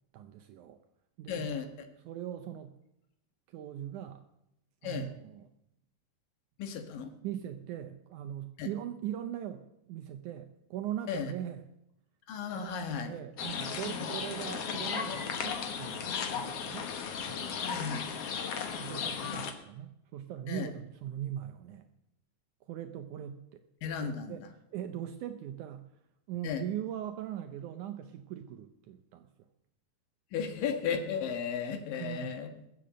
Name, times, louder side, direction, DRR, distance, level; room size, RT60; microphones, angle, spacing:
voice 1, 0.1-0.8 1.2-1.5 2.1-2.7 3.5-4.2 4.8-5.5 7.2-11.7 12.5-16.9 17.3-17.7 18.8-21.9 22.7-23.6 24.3-24.4 24.7-25.9 26.3-29.3 32.0-32.3, right 11 dB, 75° right, 8 dB, 2.1 m, -40 dB
voice 2, 1.3-1.7 4.8-5.1 6.6-7.1 8.6-8.7 11.1-11.3 12.3-13.1 13.8-14.0 17.4-18.1 20.5-20.7 23.8-24.4 26.4-26.6 30.3-32.5, left 6 dB, 85° left, 6 dB, 3.1 m, -35 dB
sound 1, 13.4-19.5, left 7 dB, 55° left, 2.0 m, -35 dB
20.5 x 7.7 x 7.6 m, 0.83 s
omnidirectional pair, 3.8 m